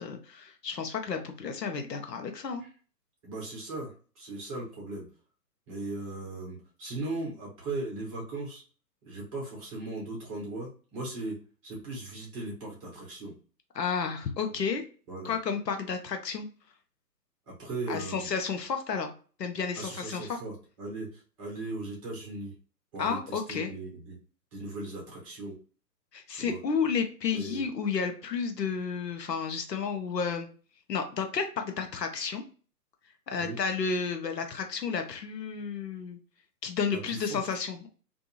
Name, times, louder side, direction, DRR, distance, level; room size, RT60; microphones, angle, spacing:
voice 1, 0.0-2.6 13.7-14.8 15.2-16.5 17.9-19.1 19.4-20.4 23.0-23.7 26.1-30.5 30.9-32.4 33.3-36.2 36.6-37.9, left 5 dB, 75° left, 5 dB, 0.8 m, -31 dB
voice 2, 3.2-5.1 5.7-8.6 9.0-11.3 11.6-13.3 15.1-15.3 17.5-18.3 19.8-22.5 22.9-24.2 24.5-25.6 26.3-26.6 27.3-27.6 33.4-33.6 36.9-37.4, right 2 dB, 20° right, -3 dB, 0.9 m, -38 dB
2.6 x 2.4 x 2.7 m, 0.39 s
figure-of-eight pair, 130°, 50 cm